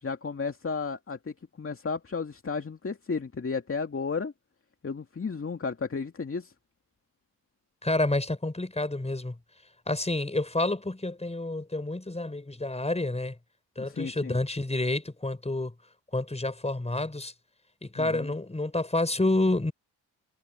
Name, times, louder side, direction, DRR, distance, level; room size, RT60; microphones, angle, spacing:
voice 1, 0.0-4.3 4.8-6.5 13.8-14.4 18.0-18.3, left 4 dB, 30° left, 2.4 m, -33 dB
voice 2, 7.8-9.4 9.9-13.4 13.8-15.7 16.1-17.3 17.8-19.7, left 2 dB, 15° left, 5.2 m, -29 dB
hypercardioid pair, 50°, 41 cm